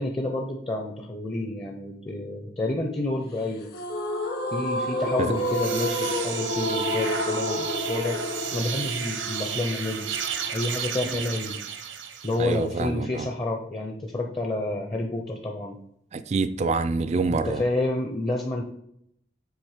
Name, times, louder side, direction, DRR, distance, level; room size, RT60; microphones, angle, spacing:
voice 1, 0.0-3.7 4.5-10.1 10.5-11.6 12.2-15.8 17.3-18.6, left 2 dB, 25° left, 2 dB, 0.6 m, -29 dB
sound 1, 3.7-10.8, equal, 55° left, 1.1 m, -30 dB
sound 2, 5.2-12.6, right 8 dB, 80° right, 0.8 m, -33 dB
voice 2, 12.4-13.3 16.1-17.6, right 4 dB, 35° right, 11 dB, 0.3 m, -26 dB
7.2 x 3.6 x 4.9 m, 0.73 s
head